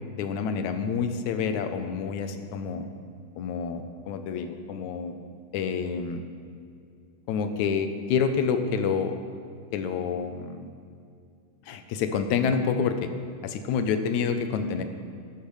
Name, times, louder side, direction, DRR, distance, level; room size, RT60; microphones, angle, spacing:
voice 1, 0.1-2.9 3.4-5.1 5.5-6.2 7.3-9.2 9.7-10.7 11.7-13.1 13.4-14.8, left 6 dB, 75° left, 8 dB, 2.0 m, -28 dB
15.5 x 13.0 x 3.2 m, 2.3 s
omnidirectional pair, 3.6 m